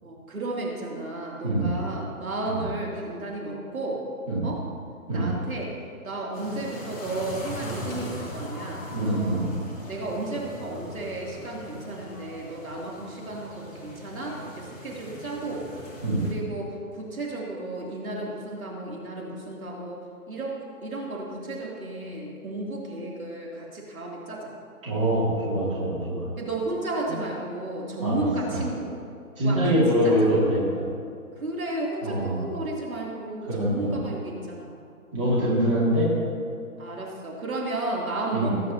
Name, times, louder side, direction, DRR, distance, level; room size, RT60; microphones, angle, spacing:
voice 1, 0.0-4.0 4.4-4.6 5.1-5.7 6.0-9.5 9.9-15.7 16.2-24.5 26.4-28.9 29.4-29.8 30.0-30.3 31.4-34.8 35.3-35.5 36.8-38.7, right 2 dB, 70° right, -3 dB, 2.9 m, -33 dB
voice 2, 1.4-1.8 4.3-4.5 5.1-5.3 8.9-9.5 16.0-16.2 24.8-26.3 28.0-28.2 28.5-28.6 29.4-30.6 32.0-32.4 33.5-33.8 35.1-36.1 38.3-38.5, right 1 dB, 20° right, -8 dB, 2.5 m, -24 dB
sound 1, 6.3-16.3, left 1 dB, 25° left, 1.9 m, -40 dB
19.0 x 9.3 x 2.8 m, 2.4 s
hypercardioid pair, 165°, 44 cm